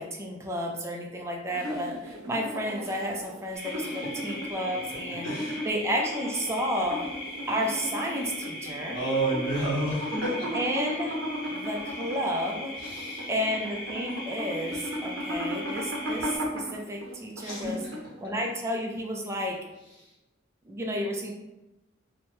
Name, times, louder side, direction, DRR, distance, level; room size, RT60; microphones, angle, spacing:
voice 1, 0.0-5.3 5.7-7.1 7.5-9.0 10.5-11.2 11.5-12.8 13.3-17.8 18.2-19.7 20.6-21.3, equal, 15° right, 0 dB, 0.3 m, -31 dB
sound 1, 1.5-18.3, equal, 90° right, 0.6 m, -36 dB
sound 2, 3.5-16.4, left 1 dB, 20° left, 1.4 m, -40 dB
voice 2, 5.2-5.7 8.9-10.5 12.8-13.3 17.4-17.9 20.0-20.1, right 1 dB, 70° left, -6 dB, 1.1 m, -30 dB
2.7 x 2.2 x 3.0 m, 0.98 s
head